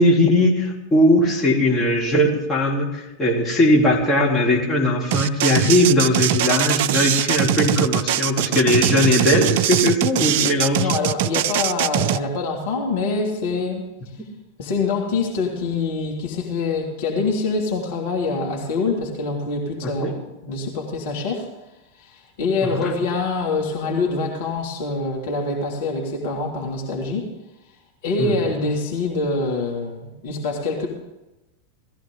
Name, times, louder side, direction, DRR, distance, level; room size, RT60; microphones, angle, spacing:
voice 1, 0.0-10.9 19.8-20.2 22.6-22.9 28.2-28.4, left 1 dB, 15° left, -4 dB, 3.6 m, -19 dB
sound 1, 5.1-12.2, right 12 dB, 50° right, 0.4 m, -21 dB
voice 2, 10.8-13.8 14.6-21.5 21.9-27.3 28.0-30.9, left 3 dB, 50° left, 0 dB, 2.6 m, -25 dB
18.0 x 14.0 x 3.9 m, 0.99 s
figure-of-eight pair, 90°, 0 cm